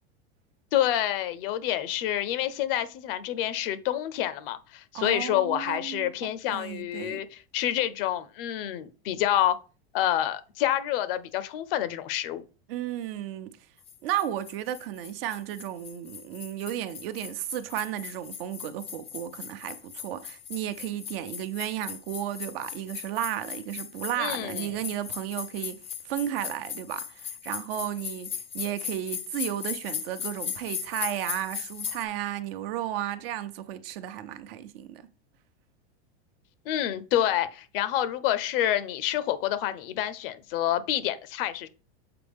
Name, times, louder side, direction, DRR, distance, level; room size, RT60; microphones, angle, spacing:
voice 1, 0.7-9.6 9.9-12.4 24.2-24.7 36.7-41.7, left 12 dB, 65° left, 0.7 m, -28 dB
voice 2, 4.9-7.2 12.7-13.5 14.0-35.1, right 12 dB, 65° right, 0.7 m, -34 dB
sound 1, 13.9-32.0, left 8 dB, 20° left, 0.5 m, -38 dB
6.8 x 4.3 x 3.5 m
supercardioid pair, 150°, 31 cm